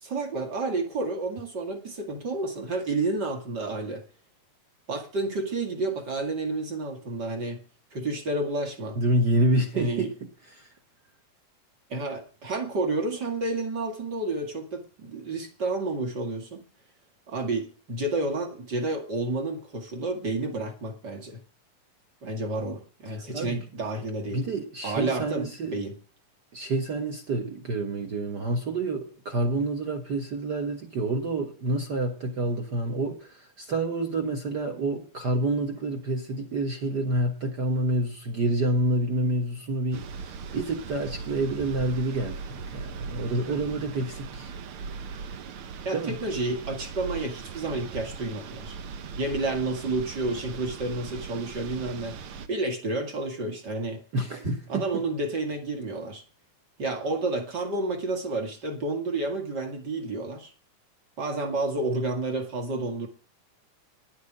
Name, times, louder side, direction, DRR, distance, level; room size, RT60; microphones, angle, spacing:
voice 1, 0.0-4.0 4.9-7.6 7.9-9.0 9.7-10.1 11.9-16.6 17.3-21.4 22.2-24.4 24.8-26.0 45.8-48.8 49.2-52.2 52.5-54.0 54.7-56.2 56.8-60.5 61.2-63.1, right 2 dB, 35° right, 2.3 m, -30 dB
voice 2, 9.0-10.1 10.6-10.7 23.3-23.6 24.3-25.7 26.5-44.5 45.9-46.1 54.1-55.0, right 2 dB, 55° right, 1.2 m, -28 dB
sound 1, 39.9-52.5, right 5 dB, 80° right, 1.2 m, -39 dB
10.5 x 8.2 x 8.8 m
omnidirectional pair, 3.9 m